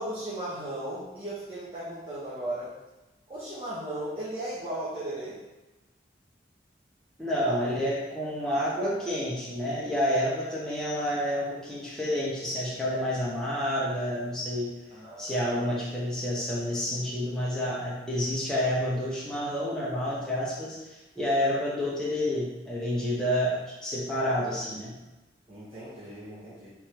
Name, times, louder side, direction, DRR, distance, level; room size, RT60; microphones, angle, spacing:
voice 1, 0.0-2.8 3.3-5.4 7.5-7.7 8.4-8.7 14.9-15.7 25.5-26.7, right 1 dB, 30° right, -9 dB, 1.0 m, -36 dB
voice 2, 7.2-14.7 15.2-25.0, equal, 5° left, -7 dB, 0.7 m, -29 dB
3.5 x 3.1 x 4.5 m, 1.1 s
head